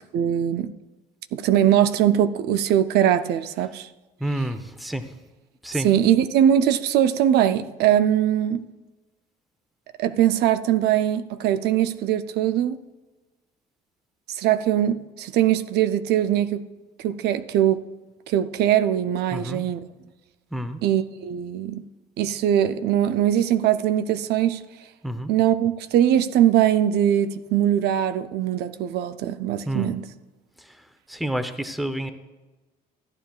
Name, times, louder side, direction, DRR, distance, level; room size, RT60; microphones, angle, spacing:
voice 1, 0.1-0.7 1.3-3.9 5.8-8.6 10.0-12.8 14.3-16.6 17.0-17.8 18.3-19.8 20.8-21.8 22.2-24.6 25.3-30.0, right 10 dB, 75° right, 0.5 m, -21 dB
voice 2, 4.2-5.1 5.6-5.9 19.3-19.7 20.5-20.8 25.0-25.3 29.7-29.9 30.6-32.1, right 1 dB, ahead, 0.7 m, -29 dB
14.0 x 10.0 x 2.4 m
cardioid pair, 110°, 17 cm